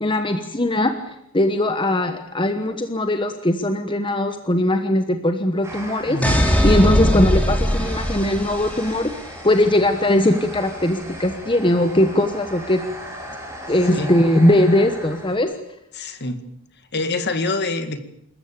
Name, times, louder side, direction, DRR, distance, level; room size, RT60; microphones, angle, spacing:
voice 1, 0.0-6.2 6.6-9.1 9.4-12.8 13.7-15.5, left 1 dB, 25° left, 7 dB, 1.2 m, -20 dB
sound 1, 5.6-15.4, equal, 15° right, 6.8 m, -37 dB
voice 2, 6.1-6.5 13.9-14.1 15.9-16.4 16.9-18.0, left 2 dB, 50° left, 10 dB, 2.0 m, -25 dB
sound 2, 6.2-9.1, equal, 5° left, 3.4 m, -20 dB
26.5 x 14.5 x 8.7 m, 0.80 s
head